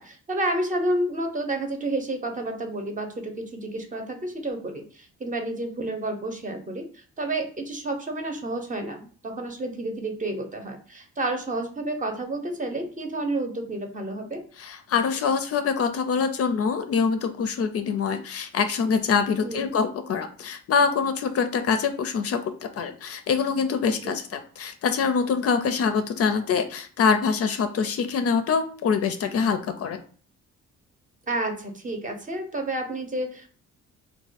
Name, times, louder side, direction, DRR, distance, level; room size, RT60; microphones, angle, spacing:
voice 1, 0.0-14.4 19.4-19.7 24.0-24.2 31.3-33.6, right 2 dB, 25° right, 4 dB, 0.7 m, -30 dB
voice 2, 14.6-30.0, left 5 dB, 55° left, 8 dB, 0.4 m, -25 dB
2.4 x 2.2 x 4.0 m, 0.43 s
cardioid pair, 90°, 30 cm